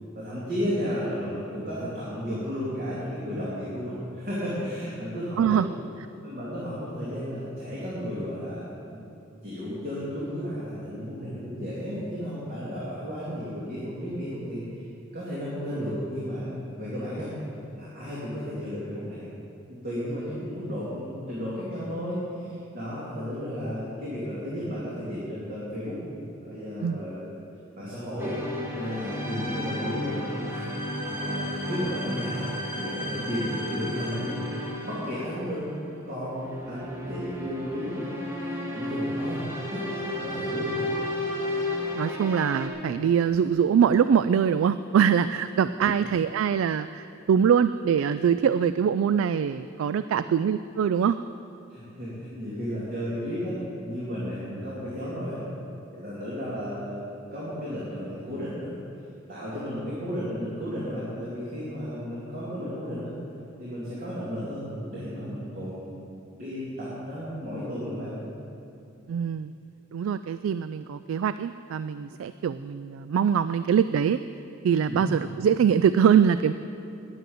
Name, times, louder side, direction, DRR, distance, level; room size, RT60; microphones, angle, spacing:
voice 1, 0.1-5.6 6.2-9.1 9.4-14.6 15.1-16.5 16.8-17.3 17.7-19.2 19.7-26.0 26.4-27.2 27.8-28.4 28.8-30.2 30.5-30.7 31.0-32.5 32.7-34.4 34.8-35.7 36.1-38.1 38.4-39.4 39.7-40.9 45.8-45.9 51.7-55.4 55.9-58.7 59.3-63.1 63.6-64.6 64.9-65.9 66.4-68.2 74.8-75.0, equal, 45° right, -9 dB, 2.6 m, -33 dB
voice 2, 5.4-5.7 26.8-27.0 42.0-51.2 69.1-69.5 69.9-74.2 74.6-76.5, right 7 dB, 85° right, 13 dB, 0.3 m, -23 dB
sound 1, 28.2-42.7, left 1 dB, 10° right, 1.3 m, -33 dB
10.5 x 9.3 x 7.8 m, 2.8 s
head